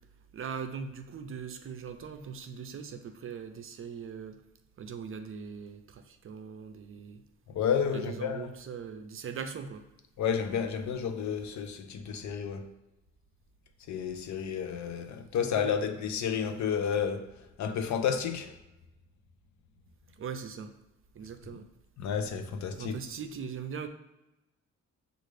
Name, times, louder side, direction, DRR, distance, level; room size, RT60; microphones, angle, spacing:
voice 1, 0.3-4.4 4.8-7.2 7.9-9.9 15.4-15.7 20.2-20.7 21.1-21.7 22.7-23.9, right 6 dB, 45° right, 0.6 m, -40 dB
voice 2, 7.5-8.5 10.2-12.7 13.9-17.3 17.6-18.5 22.0-23.0, left 7 dB, 65° left, 0.7 m, -31 dB
6.4 x 2.5 x 3.2 m
cardioid pair, 90°, 30 cm